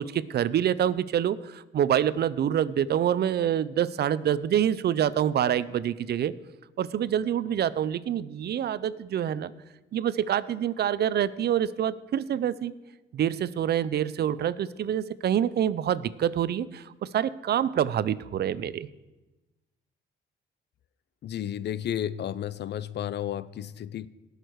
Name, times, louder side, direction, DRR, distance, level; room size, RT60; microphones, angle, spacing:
voice 1, 0.0-6.3 6.8-9.5 9.9-12.7 13.1-18.9, right 10 dB, 55° right, 17 dB, 0.6 m, -26 dB
voice 2, 21.2-24.1, left 10 dB, 60° left, 17 dB, 0.6 m, -32 dB
18.5 x 6.7 x 4.7 m, 1.1 s
cardioid pair, 90°, 20 cm